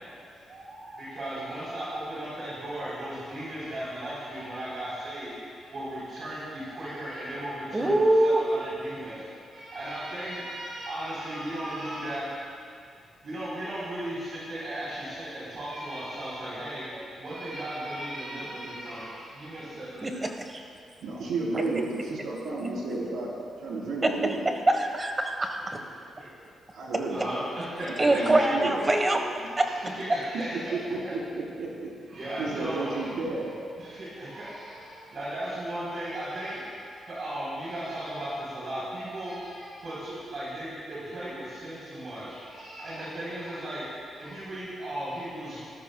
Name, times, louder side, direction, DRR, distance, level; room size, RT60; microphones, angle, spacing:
voice 1, 0.0-12.4 13.2-20.2 26.2-26.3 27.1-29.1 29.6-30.7 31.0-31.1 32.1-33.1 33.5-43.9 44.1-45.6, right 1 dB, 45° right, -9 dB, 4.0 m, -36 dB
voice 2, 7.7-8.4 20.0-20.6 24.0-24.1 24.4-25.8 28.0-29.2 29.6-29.7, right 1 dB, 20° right, 4 dB, 1.3 m, -24 dB
voice 3, 21.0-23.3 23.6-24.5 26.7-27.2 28.0-28.8 30.3-33.5, right 3 dB, 85° right, -4 dB, 3.8 m, -32 dB
24.0 x 13.5 x 2.3 m, 2.3 s
cardioid pair, 140°, 0 cm